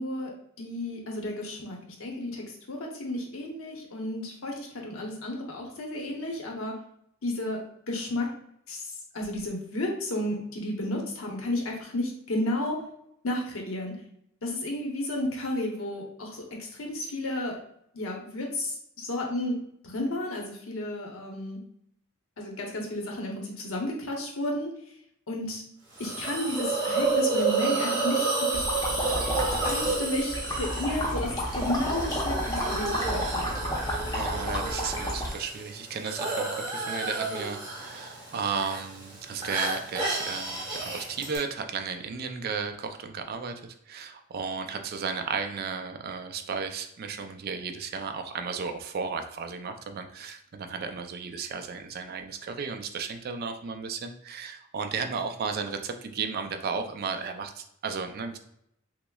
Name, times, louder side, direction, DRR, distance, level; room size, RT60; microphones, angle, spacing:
voice 1, 0.0-6.8 7.2-8.3 8.7-12.8 13.2-14.0 14.4-17.6 17.9-21.6 22.4-24.7 25.3-25.6 26.0-28.7 29.6-33.5, left 1 dB, 75° left, 0 dB, 0.8 m, -32 dB
Hiss, 26.0-41.4, right 3 dB, 20° right, 1.1 m, -31 dB
sound 1, 28.5-35.3, equal, 15° left, 0.7 m, -31 dB
voice 2, 34.1-58.4, right 5 dB, 45° right, 6 dB, 0.4 m, -34 dB
5.7 x 2.0 x 2.3 m, 0.72 s
head